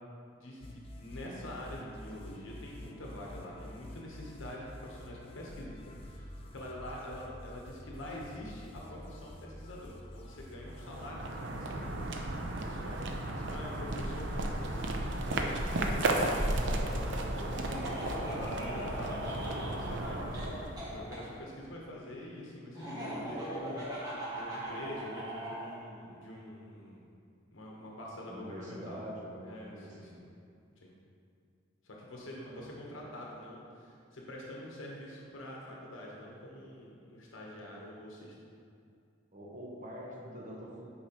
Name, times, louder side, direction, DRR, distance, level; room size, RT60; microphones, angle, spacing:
voice 1, 0.3-12.0 12.5-20.6 20.9-27.0 27.5-29.0 29.4-30.2 30.8-30.9 31.8-38.3, left 1 dB, 85° left, -3 dB, 0.9 m, -46 dB
sound 1, 0.6-18.2, left 1 dB, 30° left, 0.4 m, -48 dB
sound 2, 10.6-21.4, right 1 dB, 65° right, 0.5 m, -34 dB
Laughter, 17.5-21.2 22.7-25.7, equal, 20° right, 1.4 m, -40 dB
voice 2, 28.3-30.3 32.4-32.7 39.3-40.9, equal, 40° right, -3 dB, 0.8 m, -45 dB
8.7 x 4.3 x 2.9 m, 2.4 s
head